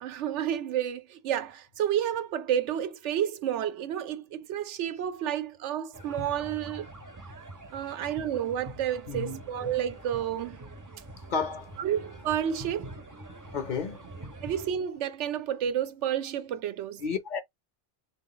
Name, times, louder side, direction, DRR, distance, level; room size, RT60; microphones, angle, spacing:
voice 1, 0.0-6.9 7.7-10.6 11.8-13.0 14.4-17.0, right 10 dB, 90° right, 0.9 m, -30 dB
sound 1, 5.9-14.7, right 1 dB, 25° right, 0.5 m, -44 dB
voice 2, 9.1-9.4 11.3-11.8 13.5-14.1 17.0-17.4, left 5 dB, 50° left, 0.7 m, -32 dB
3.8 x 2.4 x 3.8 m
omnidirectional pair, 1.2 m